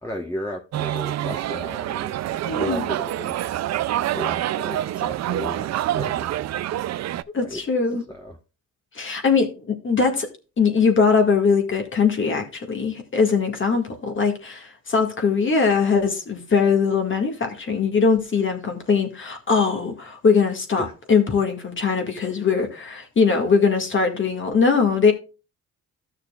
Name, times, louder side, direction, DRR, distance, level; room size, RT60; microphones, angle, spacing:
voice 1, 0.0-2.1 2.5-3.4 4.1-6.3 7.4-7.6 8.1-8.4 20.8-20.9, equal, 10° left, 1.2 m, -34 dB
sound 1, 0.7-7.2, right 13 dB, 60° right, 0.5 m, -26 dB
voice 2, 2.5-2.9 7.3-8.0 8.9-10.3 10.6-25.1, left 5 dB, 40° left, 2.0 m, -21 dB
13.0 x 6.5 x 2.4 m
cardioid pair, 90°, 30 cm